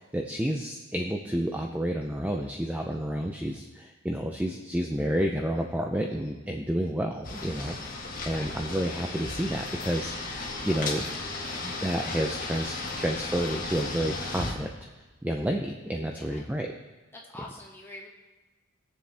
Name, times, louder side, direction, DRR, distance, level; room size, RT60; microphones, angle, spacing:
voice 1, 0.0-7.8 8.3-11.1 11.6-14.7 15.2-16.7, equal, 5° right, 2 dB, 0.5 m, -30 dB
sound 1, 7.2-14.5, left 3 dB, 40° left, 1.7 m, -35 dB
voice 2, 16.1-16.5 17.1-18.1, left 2 dB, 10° left, -3 dB, 1.7 m, -45 dB
21.5 x 7.4 x 3.4 m, 1.2 s
head